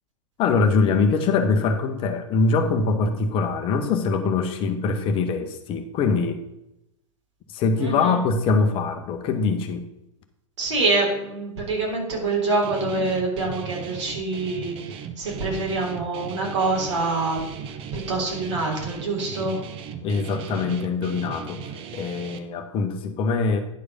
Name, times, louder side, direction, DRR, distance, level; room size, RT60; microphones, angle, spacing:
voice 1, 0.4-6.4 7.5-9.9 20.0-21.6 21.9-23.6, left 4 dB, 30° left, 6 dB, 1.0 m, -23 dB
voice 2, 7.8-8.2 10.6-17.4 17.9-19.6, right 3 dB, 65° right, -1 dB, 3.3 m, -25 dB
Guitar, 12.6-22.4, right 7 dB, 30° right, 0.8 m, -37 dB
10.5 x 4.9 x 5.4 m, 0.87 s
figure-of-eight pair, 95°, 17 cm